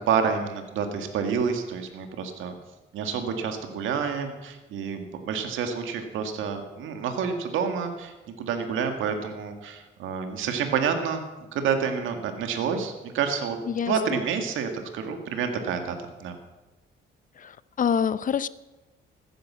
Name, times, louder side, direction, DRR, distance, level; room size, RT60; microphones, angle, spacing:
voice 1, 0.0-2.5 2.9-11.2 11.5-13.6 13.9-16.4, right 6 dB, 85° right, 6 dB, 1.9 m, -28 dB
voice 2, 17.8-18.5, left 7 dB, 40° left, 17 dB, 0.6 m, -25 dB
14.5 x 10.0 x 7.4 m, 1.1 s
cardioid pair, 90°, 20 cm